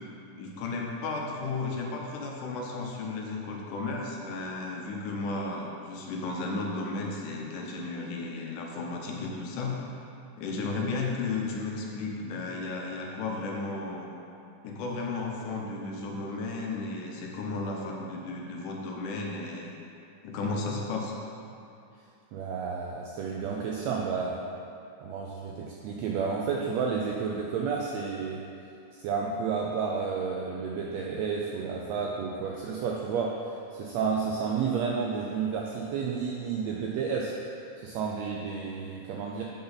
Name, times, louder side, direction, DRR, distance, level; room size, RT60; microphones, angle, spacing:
voice 1, 0.3-9.9 10.4-14.1 14.6-19.7 20.2-21.1, left 3 dB, 80° left, -1 dB, 2.4 m, -34 dB
voice 2, 22.3-24.4 25.0-28.4 28.9-33.4 33.7-37.3 37.8-39.4, right 5 dB, 85° right, -1 dB, 1.5 m, -31 dB
7.9 x 5.4 x 3.9 m, 2.6 s
omnidirectional pair, 3.6 m